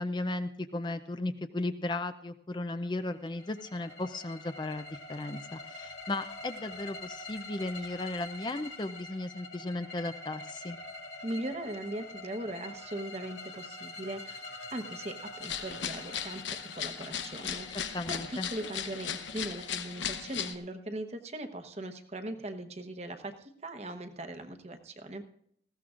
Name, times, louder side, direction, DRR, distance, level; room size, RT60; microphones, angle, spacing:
voice 1, 0.0-10.8 17.7-18.5, left 2 dB, 25° left, 10 dB, 0.5 m, -36 dB
sound 1, 3.0-20.8, left 2 dB, 75° left, 2.2 m, -46 dB
voice 2, 11.2-16.4 16.8-25.2, right 1 dB, 35° right, 8 dB, 1.0 m, -39 dB
sound 2, 15.4-20.5, left 8 dB, 90° left, 0.9 m, -37 dB
19.5 x 15.5 x 2.5 m, 0.69 s
head